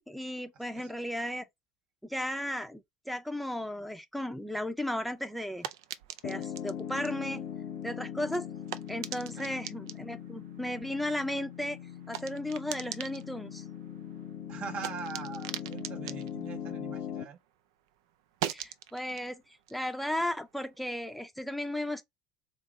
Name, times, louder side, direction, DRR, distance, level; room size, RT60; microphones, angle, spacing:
voice 1, 0.0-1.4 2.0-5.7 6.2-7.4 7.8-8.5 8.9-11.8 12.1-13.6 18.4-22.0, left 1 dB, ahead, 0.6 m, -35 dB
sound 1, 4.8-17.6 17.9-21.1, right 11 dB, 90° right, 0.4 m, -44 dB
Piano, 6.2-17.2, left 9 dB, 80° left, 1.0 m, -41 dB
voice 2, 14.5-17.4, right 6 dB, 55° right, 0.9 m, -42 dB
4.2 x 2.1 x 3.5 m
supercardioid pair, 105°, 3 cm